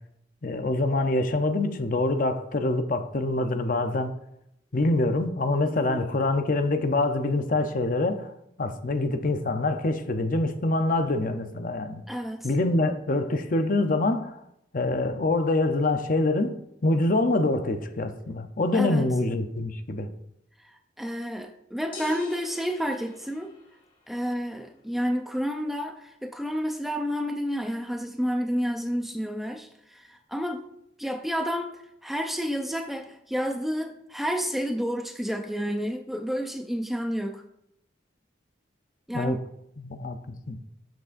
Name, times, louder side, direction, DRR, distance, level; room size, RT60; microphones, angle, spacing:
voice 1, 0.4-4.1 4.7-8.3 8.6-12.0 12.4-14.4 14.7-16.6 16.8-20.1 39.1-39.4 39.8-40.2 40.5-40.6, left 2 dB, 45° left, 0.6 m, -25 dB
voice 2, 5.7-6.1 12.1-12.5 18.7-19.1 20.6-23.5 24.1-30.7 31.0-37.4 39.1-39.4, equal, ahead, 0.4 m, -30 dB
sound 1, 21.9-24.0, left 3 dB, 25° left, 1.4 m, -43 dB
12.0 x 6.1 x 2.5 m
head